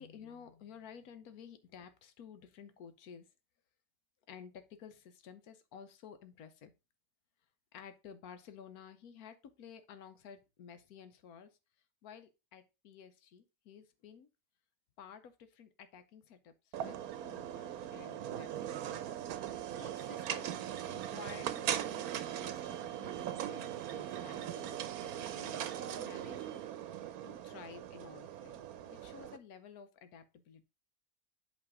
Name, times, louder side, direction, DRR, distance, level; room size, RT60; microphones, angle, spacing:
voice 1, 0.0-3.3 4.3-6.7 7.7-11.5 12.0-14.3 15.0-16.5 16.8-19.0 19.4-19.5 19.8-20.6 20.9-26.5 27.2-30.6, left 7 dB, 90° left, 10 dB, 1.3 m, -53 dB
sound 1, 16.7-29.4, right 11 dB, 90° right, 1.1 m, -40 dB
8.3 x 3.2 x 4.8 m, 0.28 s
omnidirectional pair, 1.5 m